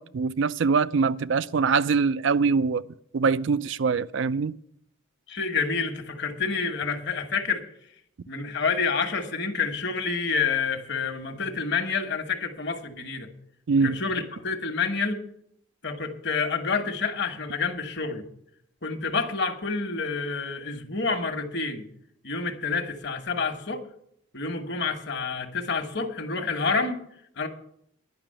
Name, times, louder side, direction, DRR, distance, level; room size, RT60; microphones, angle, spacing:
voice 1, 0.0-2.8 3.1-4.5 13.7-14.0, right 5 dB, 65° right, 0.4 m, -23 dB
voice 2, 5.3-7.6 8.3-13.3 13.8-15.2 15.8-18.2 18.8-21.8 22.2-23.8 24.3-27.0 27.4-27.5, left 4 dB, 55° left, 1.2 m, -28 dB
10.5 x 5.9 x 8.8 m
head